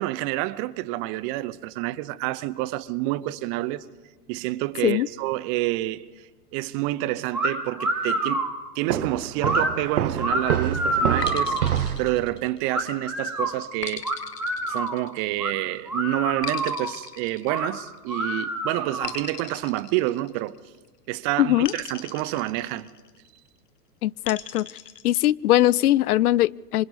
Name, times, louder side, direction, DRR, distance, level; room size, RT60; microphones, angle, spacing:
voice 1, 0.0-3.8 4.3-6.1 6.5-8.4 8.7-14.2 14.7-20.5 21.1-22.9, right 17 dB, 35° right, 0.7 m, -28 dB
sound 1, 7.3-7.5 7.8-8.5 9.4-9.7 10.2-11.7 12.7-13.5 14.0-15.0 15.4-15.5 15.9-16.9 17.5-17.7 18.1-19.2, right 1 dB, 5° right, 3.1 m, -27 dB
Walk footsteps, 8.9-12.2, right 10 dB, 70° right, 1.5 m, -27 dB
sound 2, 11.2-12.9 13.8-15.5 16.4-18.1 19.0-20.8 21.6-23.2 24.2-25.3, left 8 dB, 85° left, 1.3 m, -38 dB
voice 2, 21.4-21.7 24.0-24.7 25.0-26.8, left 14 dB, 70° left, 0.5 m, -21 dB
26.5 x 25.0 x 4.1 m
hypercardioid pair, 105°, 47 cm